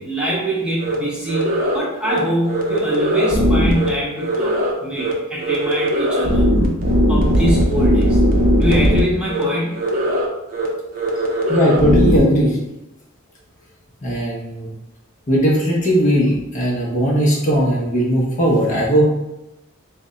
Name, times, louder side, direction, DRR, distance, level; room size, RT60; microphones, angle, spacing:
voice 1, 0.0-6.5 7.1-8.2 8.6-9.9, equal, 5° right, -6 dB, 0.8 m, -23 dB
sound 1, 0.8-0.9 1.3-1.8 2.0-2.2 2.5-3.9 4.2-4.7 5.0-5.1 5.4-9.0 9.3-9.4 9.7-10.3 10.5-10.7 10.9-12.2, equal, 45° right, 0.5 m, -18 dB
voice 2, 11.5-12.6 14.0-14.7 15.3-19.1, equal, 35° left, -4 dB, 0.7 m, -17 dB
3.3 x 2.1 x 3.8 m, 0.93 s
head